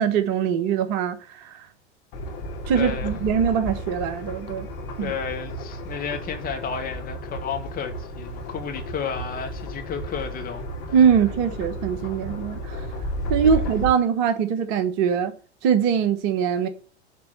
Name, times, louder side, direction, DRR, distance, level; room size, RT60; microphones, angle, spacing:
voice 1, 0.0-1.6 2.7-4.7 5.0-5.1 10.9-12.8 13.3-15.3 15.6-16.7, right 7 dB, 40° right, 1.3 m, -22 dB
sound 1, 2.1-13.9, equal, 50° left, 2.9 m, -33 dB
voice 2, 2.7-3.2 5.0-10.6 13.4-13.7, left 6 dB, 25° left, 2.3 m, -32 dB
11.0 x 4.5 x 7.6 m
figure-of-eight pair, 90°, 35 cm